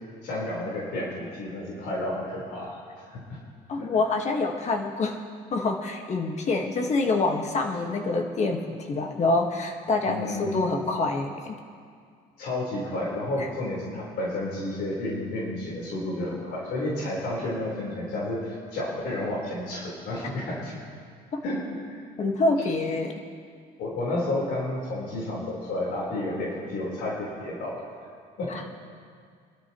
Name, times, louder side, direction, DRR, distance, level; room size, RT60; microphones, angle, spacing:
voice 1, 0.2-2.8 3.0-3.4 3.7-3.9 10.1-10.6 12.4-20.8 21.4-21.6 21.9-22.0 23.8-27.8 28.4-28.6, left 1 dB, 75° left, -5 dB, 4.2 m, -31 dB
voice 2, 3.7-5.2 5.5-11.6 13.4-13.5 21.3-21.4 22.2-23.1 28.5-28.6, left 3 dB, 40° left, 3 dB, 1.7 m, -26 dB
25.5 x 12.5 x 3.1 m, 2.1 s
cardioid pair, 110°, 17 cm